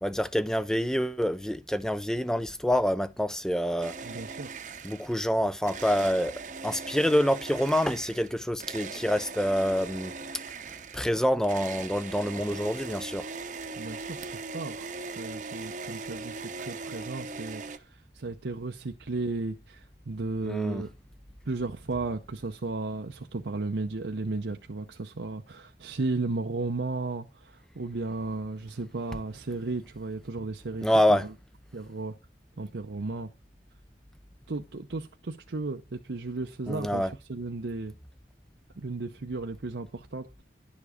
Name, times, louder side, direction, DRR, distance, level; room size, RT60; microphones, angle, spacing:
voice 1, 0.0-3.9 4.8-6.3 6.6-10.1 10.9-13.2 20.4-20.8 30.8-31.2 36.7-37.1, equal, 5° left, 0.5 m, -26 dB
sound 1, 3.8-5.2 5.6-17.8, right 4 dB, 45° right, 0.8 m, -40 dB
voice 2, 4.0-4.5 13.8-14.2 14.5-20.9 21.5-31.3 31.7-32.1 32.6-33.3 34.5-37.9 38.8-40.4, right 3 dB, 80° right, 0.7 m, -34 dB
11.0 x 7.2 x 5.0 m
head